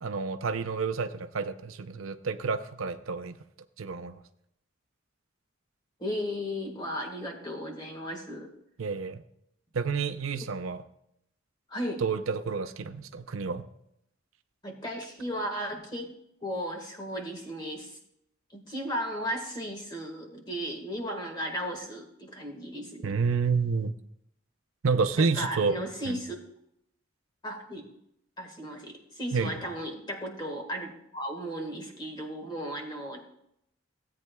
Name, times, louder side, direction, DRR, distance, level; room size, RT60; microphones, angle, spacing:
voice 1, 0.0-3.4 3.8-4.2 8.8-9.2 9.7-10.8 12.0-13.7 23.0-23.9 24.8-25.8 26.1-26.2 29.3-29.6, right 5 dB, 80° right, 9 dB, 0.6 m, -29 dB
voice 2, 6.0-8.5 11.7-12.0 14.6-16.1 16.4-18.0 18.5-23.1 25.2-26.4 27.4-27.9 28.4-33.3, equal, 20° left, 2 dB, 1.7 m, -35 dB
16.5 x 8.6 x 2.3 m, 0.76 s
head